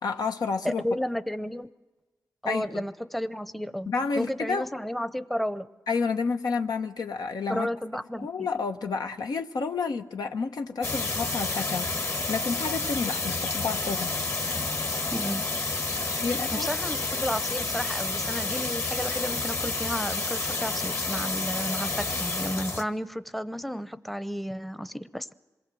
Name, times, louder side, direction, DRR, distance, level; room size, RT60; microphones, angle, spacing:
voice 1, 0.0-0.8 2.4-2.8 3.9-4.7 5.9-7.7 8.2-14.2 16.2-16.7, left 4 dB, 85° left, 5 dB, 1.0 m, -30 dB
voice 2, 0.6-1.7 2.4-3.9 4.2-5.7 7.5-8.5 15.1-15.4 16.5-25.3, equal, ahead, 13 dB, 0.7 m, -32 dB
sound 1, 10.8-22.8, left 3 dB, 45° left, 1.5 m, -30 dB
27.0 x 22.0 x 7.7 m, 1.2 s
wide cardioid pair, 120°, 7 cm